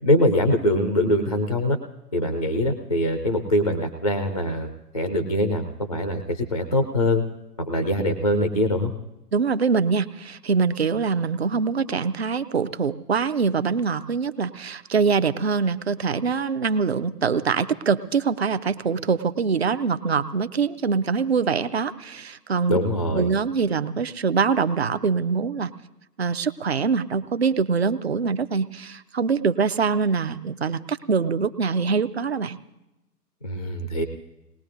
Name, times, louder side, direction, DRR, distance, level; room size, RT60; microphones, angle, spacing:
voice 1, 0.0-1.8 2.1-7.2 7.6-8.9 22.7-23.3 33.4-34.0, left 1 dB, 25° left, 7 dB, 0.5 m, -23 dB
voice 2, 9.3-22.8 23.1-25.7 26.2-32.6, right 5 dB, 40° right, 12 dB, 0.6 m, -24 dB
28.0 x 20.0 x 2.6 m, 0.95 s
figure-of-eight pair, 135°, 48 cm